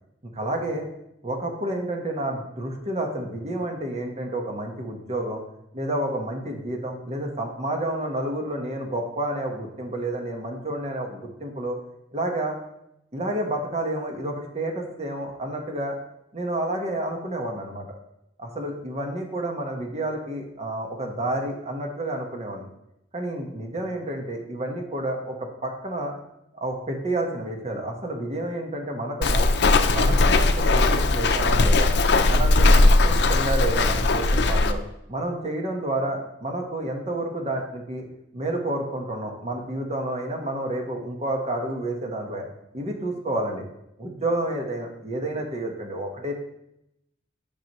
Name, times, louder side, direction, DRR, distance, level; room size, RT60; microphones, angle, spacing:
voice 1, 0.3-0.9 1.2-5.4 5.7-11.8 12.1-12.5 13.1-16.0 16.3-17.8 18.4-22.7 23.1-26.1 26.5-29.5 29.9-31.9 32.2-34.8 35.1-38.1 38.3-42.4 42.7-43.6 44.0-46.3, right 1 dB, 40° right, 2 dB, 1.2 m, -30 dB
Walk footsteps, 29.2-34.7, left 2 dB, 70° left, 0.5 m, -19 dB
9.3 x 6.0 x 3.0 m, 0.81 s
head